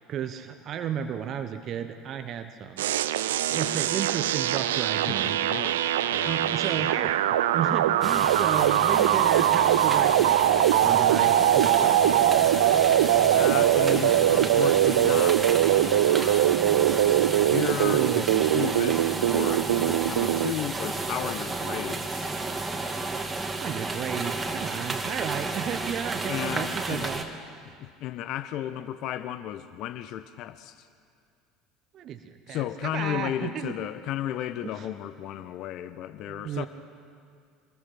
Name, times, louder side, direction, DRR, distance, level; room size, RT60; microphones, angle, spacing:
voice 1, 0.0-2.8 3.5-5.6 6.2-7.1 7.5-12.5 17.9-18.3 23.6-27.3 31.9-33.8 34.6-34.9 36.3-36.7, right 8 dB, 45° right, 8 dB, 1.2 m, -33 dB
sound 1, 2.8-20.5, right 12 dB, 70° right, 0.6 m, -22 dB
voice 2, 5.1-5.8 6.1-7.1 13.2-22.4 26.3-27.1 27.7-30.9 32.5-36.7, left 12 dB, 50° left, 13 dB, 0.8 m, -34 dB
sound 2, 8.0-27.2, right 3 dB, 20° right, 2.4 m, -32 dB
26.0 x 21.0 x 6.0 m, 2.2 s
figure-of-eight pair, 65°, 0 cm